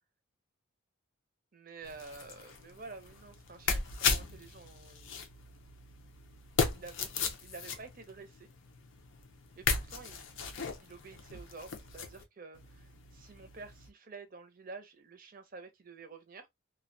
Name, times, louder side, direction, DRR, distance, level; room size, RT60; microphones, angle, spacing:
voice 1, 1.5-5.2 6.7-7.1 7.4-8.5 9.6-10.4 10.8-16.5, right 4 dB, 40° right, 0.6 m, -50 dB
sound 1, 1.8-12.2 12.6-13.9, left 5 dB, 65° left, 0.5 m, -37 dB
2.2 x 2.2 x 2.5 m
head